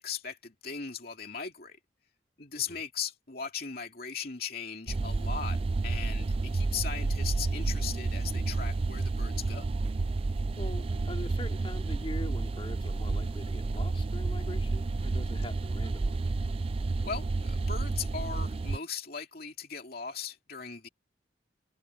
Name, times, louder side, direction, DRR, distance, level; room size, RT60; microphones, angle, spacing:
voice 1, 0.0-1.8 2.4-9.7 17.0-20.9, left 6 dB, 50° left, 2.7 m, -38 dB
sound 1, 4.9-18.8, right 3 dB, 30° right, 0.3 m, -30 dB
voice 2, 10.6-16.2, left 1 dB, 30° left, 3.4 m, -43 dB
head